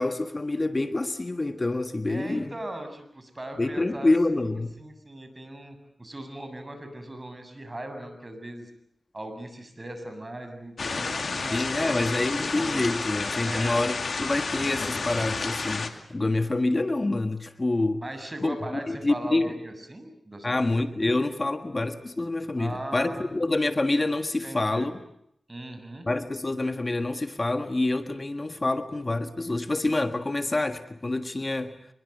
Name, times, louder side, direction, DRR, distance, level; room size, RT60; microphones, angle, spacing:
voice 1, 0.0-2.5 3.6-4.7 11.5-18.0 18.4-19.6 20.4-24.9 26.1-31.8, left 2 dB, 35° left, 9 dB, 1.6 m, -27 dB
voice 2, 2.1-4.1 4.8-8.7 9.1-12.1 12.4-12.9 13.4-13.8 18.0-20.7 22.6-23.3 24.4-24.9 25.5-26.1, right 1 dB, 30° right, 7 dB, 7.2 m, -39 dB
sound 1, 10.8-15.9, left 4 dB, 65° left, 2.5 m, -30 dB
26.0 x 22.0 x 8.1 m, 0.73 s
cardioid pair, 50°, 0 cm